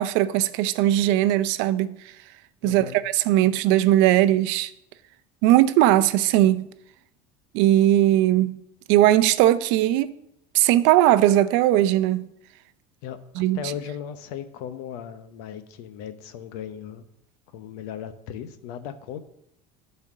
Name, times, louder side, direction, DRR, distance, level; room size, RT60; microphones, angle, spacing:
voice 1, 0.0-2.0 2.6-4.7 5.4-6.7 7.5-8.6 8.9-10.1 10.5-12.3 13.4-13.6, right 13 dB, 70° right, 0.6 m, -19 dB
voice 2, 2.6-3.0 13.0-17.0 17.5-19.2, left 9 dB, 80° left, 0.9 m, -37 dB
10.5 x 4.4 x 6.3 m
supercardioid pair, 110°, 20 cm